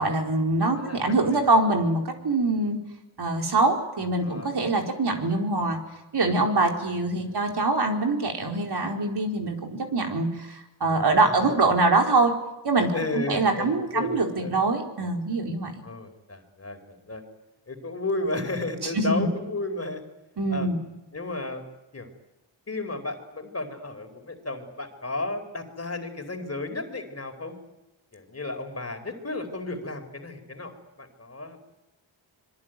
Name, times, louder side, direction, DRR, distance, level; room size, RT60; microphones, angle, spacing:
voice 1, 0.0-2.8 3.2-5.8 6.1-12.3 12.6-15.7 18.9-19.3 20.4-20.8, right 2 dB, 50° right, 2 dB, 4.7 m, -24 dB
voice 2, 0.7-1.5 4.2-4.5 7.2-7.4 11.2-11.6 12.9-14.5 15.8-17.2 17.7-20.0 20.5-20.7 21.1-21.6 21.9-22.1 22.7-27.5 28.1-31.6, left 2 dB, 30° left, 6 dB, 4.6 m, -33 dB
25.5 x 22.5 x 9.3 m, 0.96 s
cardioid pair, 85°, 49 cm